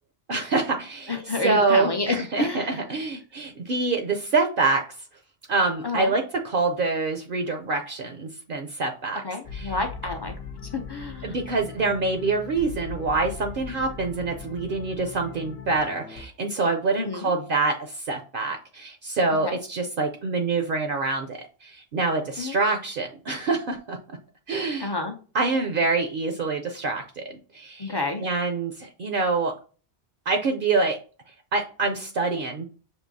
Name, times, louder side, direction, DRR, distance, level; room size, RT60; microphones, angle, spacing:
voice 1, 0.3-1.1 1.4-4.8 5.5-9.2 9.5-9.7 11.2-24.0 24.5-24.9 25.3-27.9 28.2-29.5 30.3-31.0 31.5-32.6, right 3 dB, 60° right, 4 dB, 0.7 m, -26 dB
voice 2, 1.1-2.8 5.8-6.1 9.2-10.3 10.6-11.4 17.0-17.3 19.4-19.6 22.4-22.6 24.8-25.2 27.8-28.3, left 3 dB, 40° left, 4 dB, 0.4 m, -29 dB
sound 1, 9.4-16.3, left 6 dB, 75° left, 0.8 m, -39 dB
6.2 x 2.7 x 2.6 m, 0.38 s
omnidirectional pair, 1.1 m